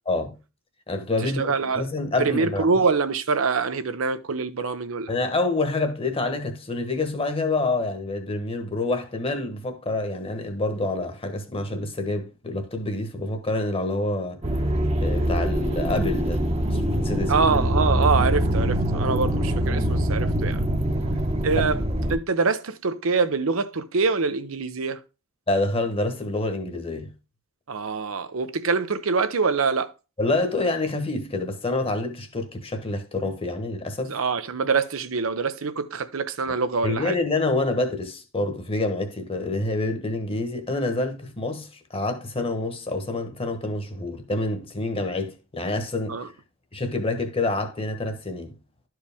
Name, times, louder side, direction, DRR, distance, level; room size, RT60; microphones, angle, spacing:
voice 1, 0.1-0.4 0.9-2.7 5.1-14.4 15.0-17.5 21.6-21.7 25.5-27.1 30.2-34.2 36.5-36.6 36.8-46.2 46.7-48.5, left 2 dB, 30° left, 1.1 m, -27 dB
voice 2, 1.2-1.8 2.2-5.1 17.3-20.6 21.4-21.8 22.1-25.0 27.7-29.9 34.1-37.1 46.1-46.3, right 4 dB, 90° right, 0.7 m, -24 dB
sound 1, 14.4-22.2, equal, 30° right, 0.9 m, -24 dB
11.5 x 4.7 x 3.5 m
head